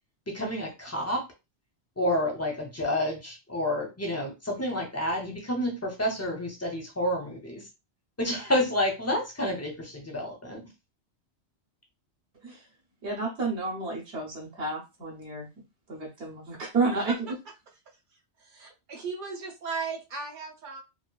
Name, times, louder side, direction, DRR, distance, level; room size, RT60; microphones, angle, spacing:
voice 1, 0.3-1.2 2.0-7.6 8.2-10.6, left 1 dB, 20° left, 1 dB, 0.5 m, -29 dB
voice 2, 13.0-15.5 15.9-17.2, right 3 dB, 75° right, -1 dB, 1.1 m, -31 dB
voice 3, 18.4-20.8, right 5 dB, 50° right, 1 dB, 0.8 m, -36 dB
2.8 x 2.2 x 2.2 m, 0.25 s
omnidirectional pair, 1.1 m